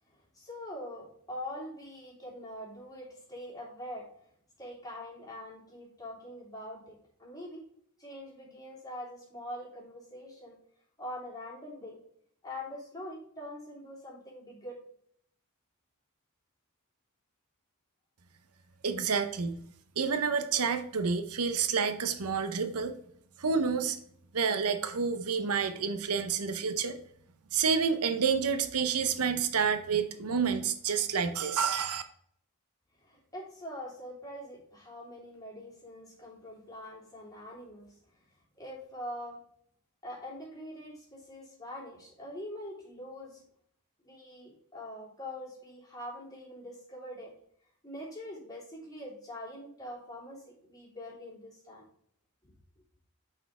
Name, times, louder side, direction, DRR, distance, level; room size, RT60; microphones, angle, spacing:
voice 1, 0.1-4.1 4.6-7.6 8.0-10.6 11.0-12.0 12.4-14.8 33.0-38.0 38.6-39.4 40.0-43.4 44.0-47.3 47.8-51.8, left 1 dB, 15° left, -4 dB, 3.0 m, -44 dB
voice 2, 18.8-19.6 20.0-22.9 23.4-24.0 24.3-27.0 27.5-32.0, right 6 dB, 80° right, 9 dB, 0.7 m, -29 dB
5.9 x 4.5 x 4.7 m, 0.64 s
head